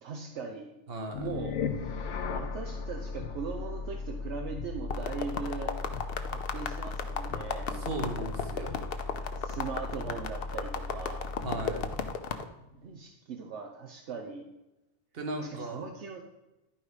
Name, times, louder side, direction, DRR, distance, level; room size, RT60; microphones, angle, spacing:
voice 1, 0.0-0.7 1.1-1.6 2.3-5.7 6.3-7.9 9.3-11.3 12.7-14.4 15.4-16.2, right 5 dB, 75° right, 2 dB, 1.1 m, -40 dB
voice 2, 0.9-1.3 7.8-8.8 11.4-11.9 15.1-15.8, right 2 dB, 55° right, 4 dB, 1.5 m, -36 dB
sound 1, 1.1-12.3, left 4 dB, 80° left, 1.1 m, -37 dB
sound 2, 4.9-12.4, left 7 dB, 60° left, 0.9 m, -35 dB
11.5 x 4.8 x 5.0 m, 0.99 s
omnidirectional pair, 1.2 m